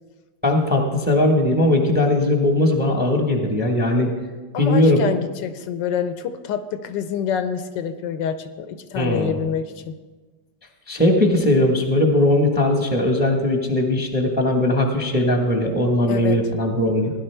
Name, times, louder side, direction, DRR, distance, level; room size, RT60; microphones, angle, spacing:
voice 1, 0.4-4.1 4.6-5.0 8.9-9.4 10.9-17.1, left 1 dB, 5° right, 3 dB, 0.8 m, -19 dB
voice 2, 4.5-10.0 16.1-16.4, left 7 dB, 80° left, 10 dB, 1.3 m, -27 dB
16.5 x 11.0 x 3.4 m, 1.3 s
omnidirectional pair, 2.0 m